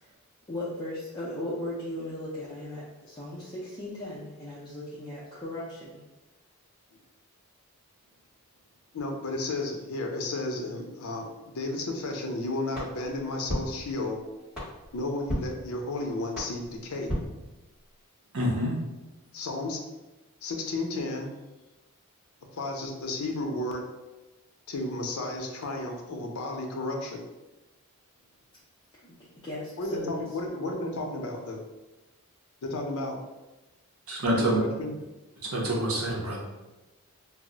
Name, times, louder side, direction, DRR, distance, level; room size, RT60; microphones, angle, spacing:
voice 1, 0.5-6.0 29.4-30.3, left 1 dB, 20° left, -9 dB, 0.4 m, -37 dB
voice 2, 8.9-14.2 14.9-17.1 19.3-19.8 20.4-21.3 22.5-23.8 24.7-27.2 29.8-31.6 32.6-33.2 34.3-34.9, left 2 dB, 85° left, 2 dB, 0.5 m, -33 dB
sound 1, 12.7-18.1, equal, 5° right, 1.1 m, -37 dB
voice 3, 18.3-18.7 34.1-34.6 35.5-36.4, right 1 dB, 80° right, -2 dB, 0.7 m, -26 dB
2.3 x 2.0 x 3.8 m, 1.1 s
head